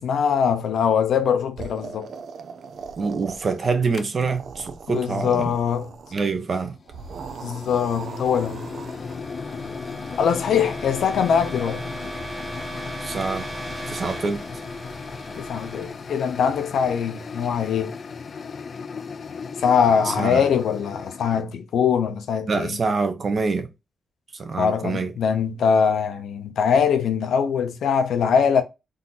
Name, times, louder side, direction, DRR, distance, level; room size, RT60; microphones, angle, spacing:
voice 1, 0.0-2.1 4.9-5.9 7.4-8.7 10.2-11.9 15.4-17.9 19.6-22.8 24.6-28.6, left 7 dB, 80° left, 0.8 m, -22 dB
sound 1, 1.6-3.9 4.2-6.3 6.9-9.2, right 5 dB, 65° right, 0.5 m, -39 dB
voice 2, 3.0-5.5 6.1-6.8 13.0-13.4 13.9-14.4 20.1-20.4 22.5-23.7 24.4-25.1, right 4 dB, 45° right, 0.9 m, -25 dB
sound 2, 3.9-4.2 6.5-21.4, left 5 dB, 50° left, 0.4 m, -36 dB
sound 3, 7.3-17.1, right 1 dB, 20° right, 1.6 m, -38 dB
4.0 x 2.8 x 3.9 m
cardioid pair, 110°, 0 cm